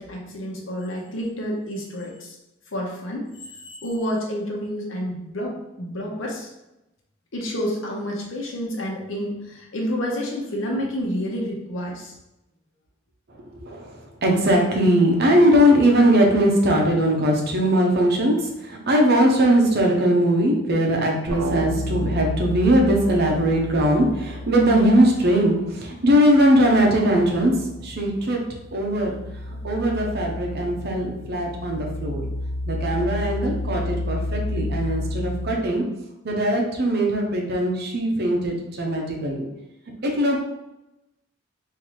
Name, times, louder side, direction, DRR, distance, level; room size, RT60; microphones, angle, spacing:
voice 1, 0.0-2.3 2.7-6.5 7.3-12.1, equal, 85° left, -1 dB, 0.9 m, -29 dB
voice 2, 14.2-18.3 18.6-27.5 27.8-28.4 28.7-29.2 29.6-32.2 32.7-35.8 36.2-39.4 40.0-40.4, equal, 55° right, 0 dB, 0.8 m, -20 dB
sound 1, 21.3-25.6 25.9-35.5, left 1 dB, 90° right, 0.5 m, -31 dB
3.8 x 2.7 x 3.0 m, 0.92 s
head